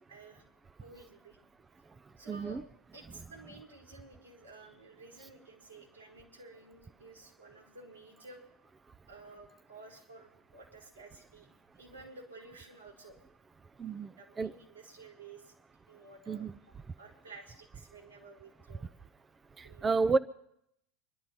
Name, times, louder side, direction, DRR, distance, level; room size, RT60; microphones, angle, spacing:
voice 1, 0.1-0.4 0.8-1.4 1.8-2.6 2.9-8.4 9.1-11.5 11.7-13.2 14.2-15.5 15.9-18.9 19.6-20.1, right 3 dB, 85° right, -2 dB, 4.5 m, -53 dB
voice 2, 2.3-2.6 13.8-14.5 16.3-16.6 19.6-20.2, right 4 dB, 20° right, 14 dB, 0.5 m, -31 dB
26.5 x 12.0 x 4.3 m, 0.78 s
figure-of-eight pair, 80°, 0 cm